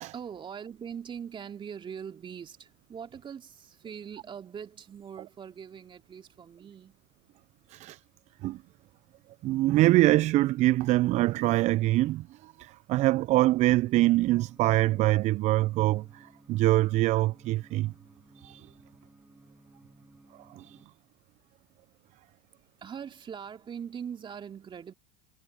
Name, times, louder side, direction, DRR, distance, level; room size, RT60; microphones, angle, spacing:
voice 1, 0.1-7.0 22.8-24.9, right 7 dB, 30° right, 2.7 m, -41 dB
voice 2, 7.7-8.0 8.4-8.6 9.4-17.9 18.4-18.7 20.5-20.8, right 17 dB, 45° right, 0.6 m, -24 dB
sound 1, 13.7-20.9, right 1 dB, 5° right, 6.7 m, -58 dB
hypercardioid pair, 80°, 16 cm